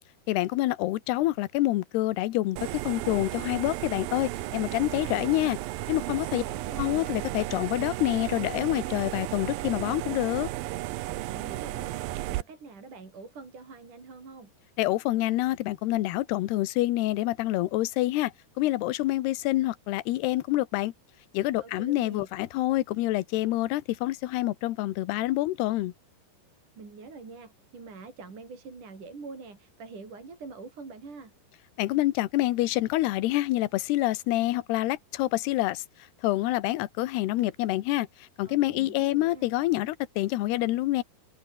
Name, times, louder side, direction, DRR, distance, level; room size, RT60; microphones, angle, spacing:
voice 1, 0.3-5.6 5.9-6.4 6.8-10.5 14.8-20.9 21.3-25.9 31.8-35.8 36.2-41.0, left 16 dB, 75° left, 3.1 m, -27 dB
sound 1, 2.6-12.4, right 16 dB, 75° right, 2.3 m, -34 dB
voice 2, 6.3-7.0 11.3-14.5 21.6-22.3 26.8-31.3 38.5-39.5, right 4 dB, 50° right, 7.2 m, -45 dB
open air
omnidirectional pair, 4.8 m